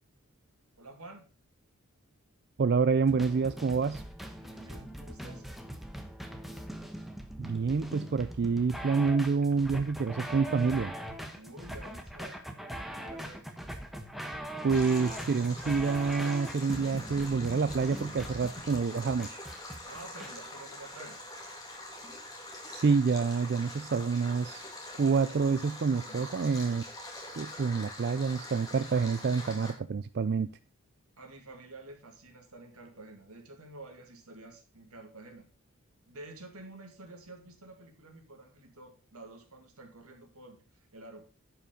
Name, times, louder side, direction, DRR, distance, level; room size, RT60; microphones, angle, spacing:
voice 1, 0.8-1.3 4.3-5.5 11.3-12.4 12.7-13.4 19.9-21.2 26.0-26.2 31.2-35.5 36.1-41.3, right 2 dB, 90° right, 2.3 m, -50 dB
voice 2, 2.6-4.0 7.4-10.9 14.6-19.4 22.7-24.6 25.0-26.8 27.4-30.5, right 5 dB, 50° right, 0.4 m, -28 dB
sound 1, 3.1-20.3, right 1 dB, ahead, 1.0 m, -41 dB
Stream, 14.7-29.7, left 1 dB, 15° left, 2.9 m, -44 dB
11.0 x 5.8 x 5.2 m
head